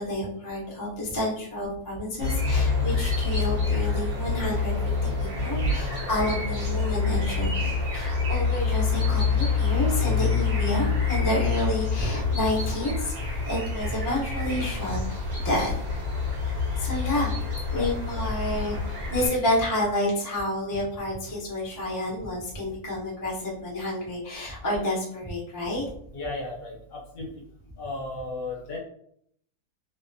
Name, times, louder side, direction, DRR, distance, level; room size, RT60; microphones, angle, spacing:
voice 1, 0.0-13.1 13.4-15.0 15.4-15.9 16.5-17.3 17.7-25.8, left 1 dB, 25° left, -6 dB, 0.4 m, -29 dB
sound 1, 2.2-19.3, left 4 dB, 50° right, 1.0 m, -27 dB
voice 2, 26.1-27.3 27.8-28.8, right 1 dB, 65° left, -2 dB, 1.2 m, -33 dB
2.7 x 2.1 x 2.5 m, 0.68 s
omnidirectional pair, 1.6 m